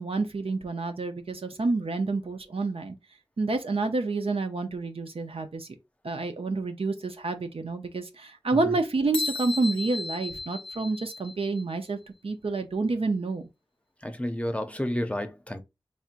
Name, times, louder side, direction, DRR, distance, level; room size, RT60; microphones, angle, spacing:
voice 1, 0.0-3.0 3.4-5.7 6.0-12.0 12.2-13.5, right 3 dB, 80° right, 0.7 m, -29 dB
sound 1, 9.1-11.8, left 3 dB, 75° left, 0.4 m, -35 dB
voice 2, 14.0-15.6, left 1 dB, 15° left, 0.6 m, -30 dB
4.3 x 3.5 x 2.5 m
wide cardioid pair, 55°, 9 cm